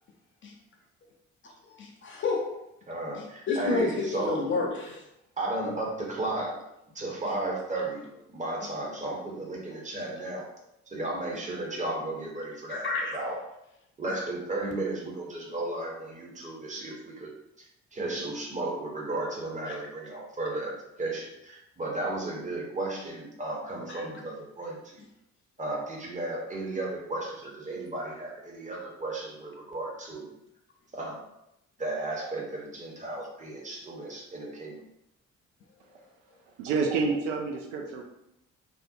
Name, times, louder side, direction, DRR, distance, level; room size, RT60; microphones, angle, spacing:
voice 1, 1.8-2.5 3.5-5.0 12.7-13.2 19.7-19.8 23.9-24.0, left 3 dB, 30° left, 1 dB, 0.4 m, -30 dB
voice 2, 2.9-4.4 5.4-6.6 6.9-10.5 10.9-12.9 13.1-13.4 14.0-25.0 25.6-30.3 30.9-31.2 31.8-34.8, right 2 dB, 20° right, -2 dB, 0.8 m, -34 dB
voice 3, 36.6-38.0, right 4 dB, 70° right, 1 dB, 0.5 m, -28 dB
2.5 x 2.1 x 2.6 m, 0.84 s
figure-of-eight pair, 40°, 40 cm